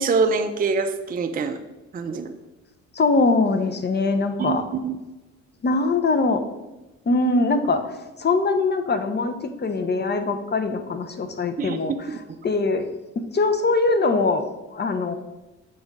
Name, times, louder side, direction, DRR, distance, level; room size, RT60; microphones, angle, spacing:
voice 1, 0.0-1.6 1.9-2.3 4.4-5.0 11.6-11.8 12.1-12.2, right 4 dB, 30° right, 7 dB, 0.5 m, -24 dB
voice 2, 2.9-4.6 5.6-6.4 7.1-7.9 8.2-11.9 12.4-12.9 13.3-14.4 14.7-15.2, left 3 dB, 35° left, 7 dB, 0.7 m, -22 dB
6.9 x 3.6 x 5.2 m, 1.1 s
cardioid pair, 90°, 30 cm